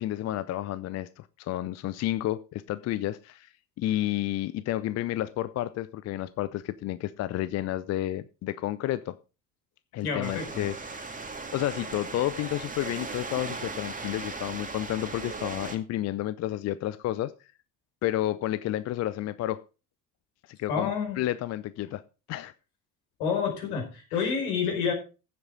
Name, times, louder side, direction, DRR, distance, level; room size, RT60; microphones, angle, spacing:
voice 1, 0.0-3.5 3.8-9.2 9.9-17.3 18.0-19.6 20.5-22.0 22.3-22.5 24.1-24.3, left 14 dB, 35° left, 0.6 m, -31 dB
voice 2, 10.0-10.6 20.7-21.2 23.2-24.9, left 6 dB, 65° left, 4.8 m, -29 dB
sound 1, 10.2-15.8, right 3 dB, 15° right, 2.2 m, -38 dB
15.0 x 7.9 x 3.8 m
figure-of-eight pair, 60°, 48 cm